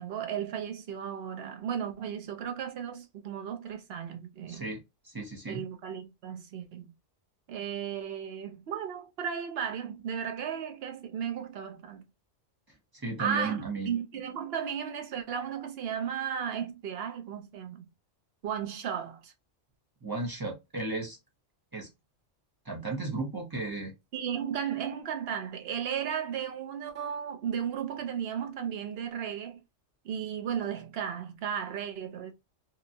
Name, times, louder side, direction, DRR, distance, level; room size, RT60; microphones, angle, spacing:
voice 1, 0.0-4.7 5.5-6.9 7.5-12.0 13.2-17.9 18.4-19.3 24.1-29.6 30.0-32.3, right 8 dB, 60° right, 0.8 m, -35 dB
voice 2, 4.5-5.6 12.9-13.9 20.0-21.2 21.7-21.9 22.6-23.9, right 3 dB, 20° right, 0.7 m, -35 dB
2.8 x 2.2 x 2.6 m
omnidirectional pair, 1.3 m